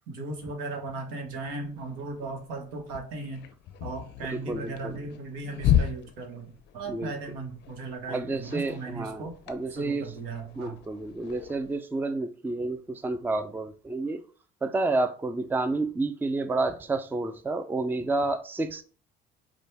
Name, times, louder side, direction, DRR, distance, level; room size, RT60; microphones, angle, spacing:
voice 1, 0.1-3.4 3.8-9.3 9.8-10.8, right 3 dB, 85° right, 1.1 m, -37 dB
sound 1, 1.2-11.7, left 10 dB, 65° left, 0.5 m, -34 dB
voice 2, 4.2-5.1 6.9-7.1 8.1-10.2 10.6-14.2 14.6-18.8, right 2 dB, 10° right, 0.4 m, -30 dB
5.0 x 2.2 x 3.3 m
supercardioid pair, 95°, 20 cm